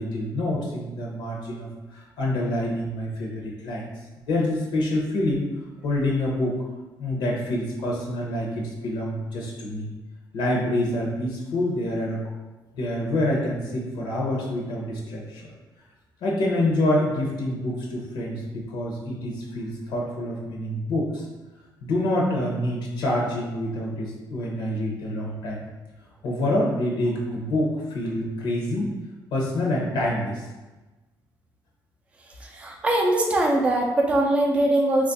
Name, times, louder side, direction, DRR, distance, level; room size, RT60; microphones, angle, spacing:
voice 1, 0.0-3.8 4.3-5.4 5.8-6.6 7.0-9.9 10.3-12.2 12.7-15.5 16.2-21.2 21.8-25.6 26.2-28.9 29.3-30.4, left 1 dB, 70° left, -2 dB, 0.7 m, -26 dB
voice 2, 32.4-35.1, right 1 dB, 15° right, 0 dB, 0.4 m, -22 dB
3.1 x 2.4 x 3.9 m, 1.2 s
cardioid pair, 150°, 8 cm